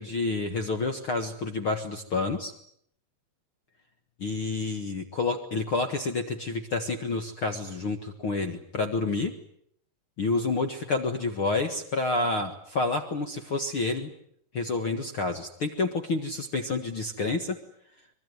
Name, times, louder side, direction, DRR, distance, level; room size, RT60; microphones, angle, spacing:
voice 1, 0.0-2.5 4.2-9.3 10.2-14.1 14.5-17.6, left 3 dB, 55° left, 7 dB, 1.4 m, -29 dB
25.0 x 22.5 x 9.5 m, 0.69 s
omnidirectional pair, 5.0 m